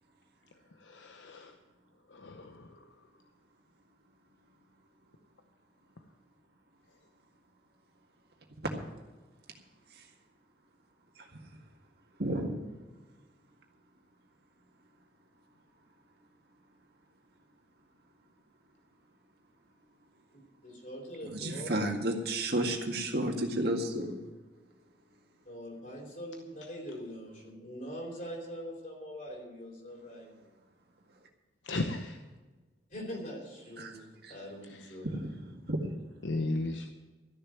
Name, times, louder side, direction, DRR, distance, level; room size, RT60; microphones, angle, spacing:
voice 1, 0.8-1.5 2.1-2.9 31.6-32.2 34.7-35.0 36.2-36.9, left 2 dB, 85° left, 6 dB, 0.9 m, -35 dB
voice 2, 12.2-12.6 21.2-24.2 33.8-33.9 34.2-34.4 35.0-35.8, right 1 dB, 55° right, 1 dB, 2.0 m, -32 dB
voice 3, 20.3-21.8 25.4-30.4 32.9-35.1, equal, 45° left, -1 dB, 4.1 m, -43 dB
13.5 x 6.8 x 9.3 m, 1.3 s
head